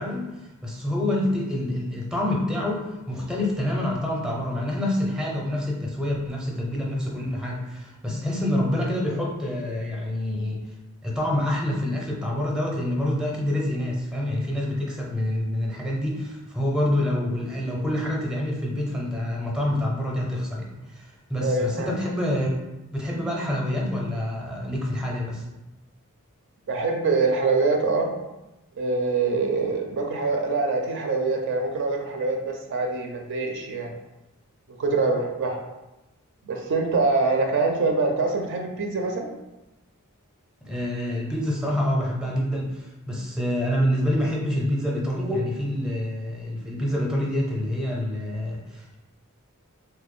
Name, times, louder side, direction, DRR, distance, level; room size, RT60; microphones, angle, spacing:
voice 1, 0.0-10.6 11.0-22.6 22.9-25.5 40.6-49.0, left 1 dB, 5° right, -2 dB, 0.5 m, -27 dB
voice 2, 21.4-21.9 26.7-28.1 28.8-33.9 34.8-35.6 36.5-39.3, right 3 dB, 60° right, 3 dB, 0.4 m, -24 dB
3.1 x 2.1 x 3.6 m, 0.99 s
head